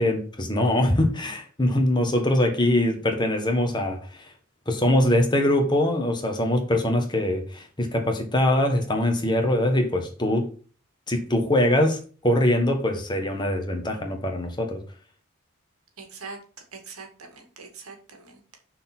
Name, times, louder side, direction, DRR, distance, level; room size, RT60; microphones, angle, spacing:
voice 1, 0.0-4.3 4.7-10.5 11.1-14.8, left 1 dB, 20° left, 3 dB, 1.6 m, -23 dB
voice 2, 16.0-16.4 16.7-18.4, right 4 dB, 90° right, 4 dB, 2.1 m, -42 dB
6.4 x 4.5 x 6.1 m, 0.39 s
head